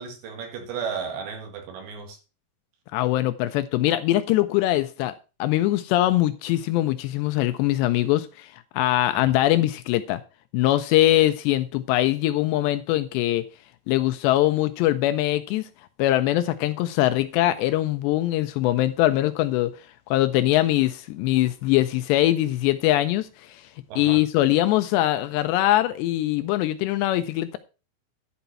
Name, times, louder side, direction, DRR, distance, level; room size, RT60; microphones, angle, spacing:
voice 1, 0.0-2.2 23.9-24.2, right 6 dB, 70° right, 4.0 m, -34 dB
voice 2, 2.9-10.2 10.5-13.4 13.9-15.7 16.0-19.7 20.1-23.7 24.0-27.6, left 15 dB, 80° left, 2.6 m, -22 dB
11.5 x 5.5 x 5.7 m
omnidirectional pair, 5.3 m